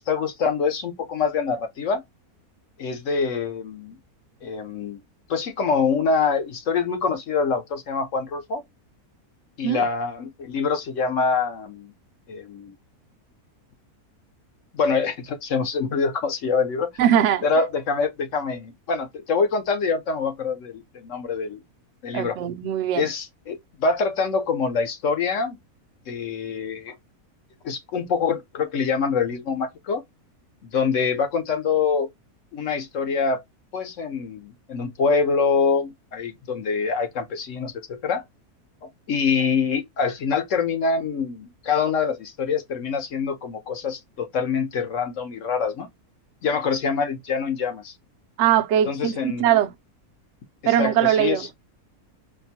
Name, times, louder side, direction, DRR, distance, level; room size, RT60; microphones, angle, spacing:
voice 1, 0.0-2.0 2.8-4.0 4.4-5.0 5.3-8.6 9.6-11.9 12.3-12.8 14.7-16.9 17.4-21.6 22.0-22.4 22.9-25.6 26.1-26.9 27.6-30.0 30.6-32.1 32.5-33.4 33.7-38.2 38.8-45.9 46.4-47.9 48.8-49.5 50.8-51.5, left 5 dB, 60° left, 1.0 m, -25 dB
voice 2, 17.0-17.4 22.1-23.1 48.4-49.7 50.7-51.5, right 11 dB, 65° right, 0.8 m, -21 dB
4.4 x 2.1 x 2.7 m
omnidirectional pair, 1.6 m